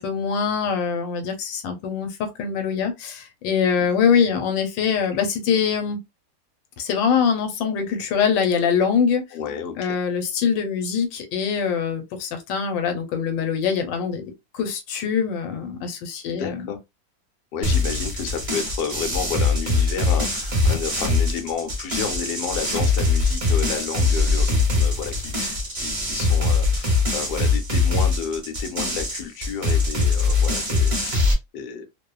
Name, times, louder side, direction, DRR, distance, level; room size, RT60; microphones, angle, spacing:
voice 1, 0.0-6.0 6.8-9.2 9.8-14.2 14.5-16.7, left 6 dB, 90° left, 1.4 m, -23 dB
voice 2, 9.3-10.0 16.3-16.8 17.5-31.9, left 7 dB, 70° left, 1.1 m, -31 dB
sound 1, 17.6-31.3, left 3 dB, 35° right, 0.5 m, -22 dB
3.0 x 2.0 x 2.3 m
omnidirectional pair, 2.0 m